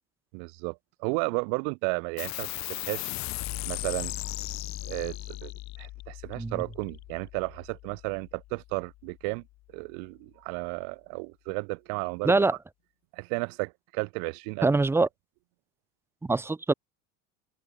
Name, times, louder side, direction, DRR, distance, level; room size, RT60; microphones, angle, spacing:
voice 1, 0.3-3.1 3.6-4.4 4.8-5.5 5.8-9.4 9.7-12.4 13.1-14.7, right 40 dB or more, 75° right, 1.4 m, -33 dB
sound 1, 2.2-9.1, left 18 dB, 55° left, 1.9 m, -38 dB
voice 2, 12.2-12.6 14.6-15.1 16.2-16.7, right 3 dB, 5° right, 0.6 m, -24 dB
open air
supercardioid pair, 130°, 34 cm